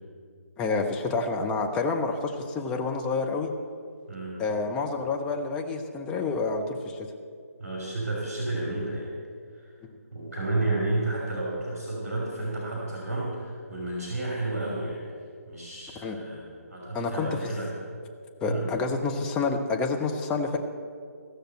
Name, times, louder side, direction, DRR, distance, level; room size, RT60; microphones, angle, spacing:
voice 1, 0.6-3.5 4.4-7.1 9.8-9.9 16.0-16.2 16.9-17.3 18.4-20.6, left 4 dB, 10° left, 2 dB, 0.7 m, -28 dB
voice 2, 4.1-4.4 7.6-9.1 9.6-9.7 10.1-15.1 15.5-16.4 16.7-17.7 18.4-18.7, right 2 dB, 55° right, -4 dB, 3.1 m, -31 dB
15.5 x 6.6 x 7.5 m, 2.2 s
figure-of-eight pair, 145°, 9 cm